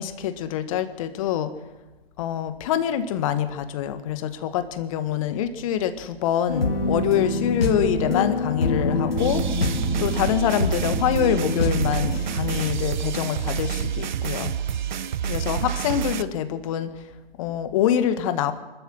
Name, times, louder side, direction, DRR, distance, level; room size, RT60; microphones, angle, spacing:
voice 1, 0.0-1.5 2.2-9.6 10.0-14.5 15.3-17.0 17.4-18.5, left 10 dB, 35° left, 11 dB, 1.7 m, -25 dB
sound 1, 6.5-12.6, left 2 dB, 75° left, 4.0 m, -26 dB
sound 2, 9.2-16.2, right 9 dB, 50° right, 1.0 m, -28 dB
26.0 x 13.0 x 7.6 m, 1.2 s
figure-of-eight pair, 125°, 30 cm